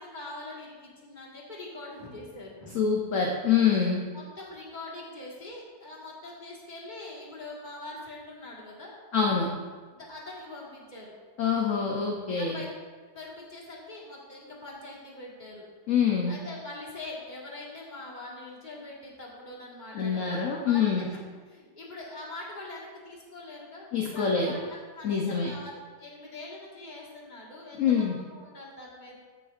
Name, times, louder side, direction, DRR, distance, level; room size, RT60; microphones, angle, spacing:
voice 1, 0.0-2.8 4.1-9.0 9.9-11.1 12.3-12.7 13.1-15.6 16.3-21.1 21.5-29.2, left 2 dB, 30° left, -4 dB, 1.7 m, -43 dB
voice 2, 2.7-4.0 9.1-9.5 11.4-12.6 15.9-16.3 19.9-21.1 23.9-24.5 25.0-25.5 27.8-28.2, left 6 dB, 60° left, 0 dB, 1.1 m, -25 dB
14.0 x 6.4 x 2.5 m, 1.5 s
omnidirectional pair, 1.7 m